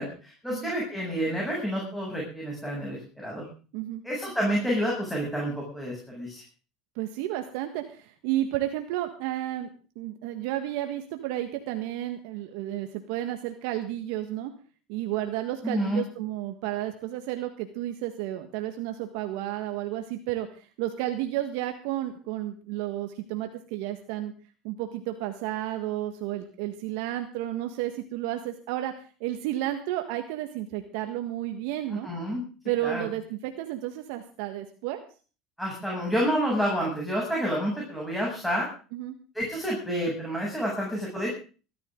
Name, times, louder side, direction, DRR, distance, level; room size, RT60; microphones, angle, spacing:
voice 1, 0.0-3.4 4.0-6.4 15.6-16.0 31.9-32.4 32.8-33.1 35.6-38.7 39.3-41.3, equal, 5° left, -3 dB, 7.8 m, -29 dB
voice 2, 6.9-9.7 9.9-14.5 14.9-24.3 24.6-28.9 29.2-32.1 32.6-35.0 38.9-39.2, right 13 dB, 75° right, 6 dB, 1.6 m, -32 dB
21.5 x 13.0 x 3.9 m, 0.37 s
hypercardioid pair, 85°, 0 cm